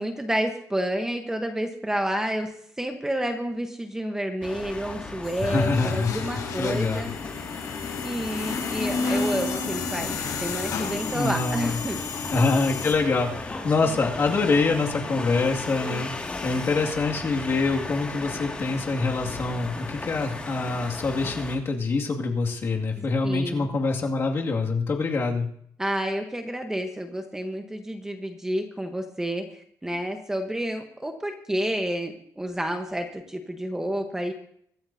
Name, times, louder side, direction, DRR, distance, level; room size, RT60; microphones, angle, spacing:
voice 1, 0.0-2.5 2.8-7.1 8.0-12.0 23.0-23.7 25.8-34.3, right 1 dB, 10° right, 4 dB, 1.1 m, -30 dB
sound 1, 4.4-21.6, left 3 dB, 20° left, 2.1 m, -37 dB
sound 2, 5.2-12.9, left 4 dB, 70° left, 6.0 m, -31 dB
voice 2, 5.4-6.1 6.6-7.0 11.1-11.8 12.3-25.5, left 3 dB, 40° left, 0 dB, 2.2 m, -25 dB
24.0 x 13.5 x 2.7 m, 0.66 s
cardioid pair, 165°, 7 cm